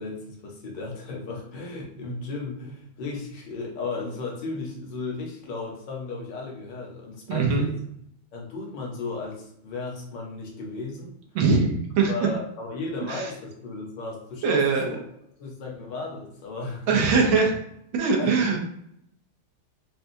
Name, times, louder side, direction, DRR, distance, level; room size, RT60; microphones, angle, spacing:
voice 1, 0.0-7.7 8.3-11.1 12.1-15.0 15.4-17.3 18.2-18.6, left 3 dB, 60° left, -1 dB, 1.6 m, -35 dB
voice 2, 7.3-7.7 11.3-12.1 13.1-13.3 14.4-14.9 16.9-17.5 17.9-18.6, right 4 dB, 75° right, 1 dB, 1.6 m, -21 dB
5.5 x 2.3 x 2.6 m, 0.74 s
omnidirectional pair, 2.3 m